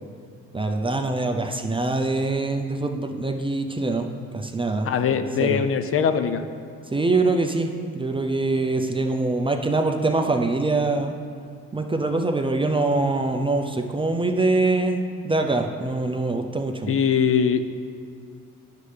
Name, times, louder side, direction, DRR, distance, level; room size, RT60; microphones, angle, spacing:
voice 1, 0.5-4.1 4.3-5.6 6.9-11.1 11.7-17.0, right 2 dB, 15° right, 4 dB, 0.5 m, -24 dB
voice 2, 4.9-6.4 16.9-17.6, left 7 dB, 45° left, 10 dB, 0.5 m, -21 dB
9.6 x 6.7 x 3.3 m, 2.3 s
cardioid pair, 90°, 30 cm